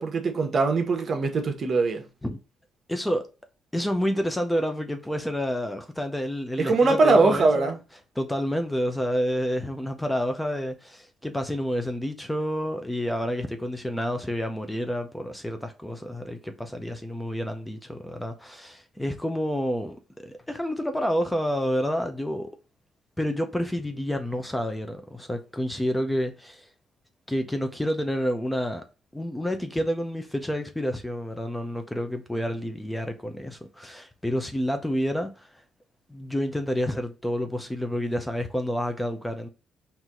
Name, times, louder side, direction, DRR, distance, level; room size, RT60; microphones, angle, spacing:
voice 1, 0.0-2.1 6.6-7.8, right 3 dB, 45° right, 1.2 m, -21 dB
voice 2, 2.9-3.3 3.7-7.8 8.2-22.5 23.2-26.7 27.3-28.8 29.1-35.6 36.1-39.5, equal, 5° left, 0.7 m, -29 dB
4.5 x 2.8 x 3.7 m
cardioid pair, 90°, 0 cm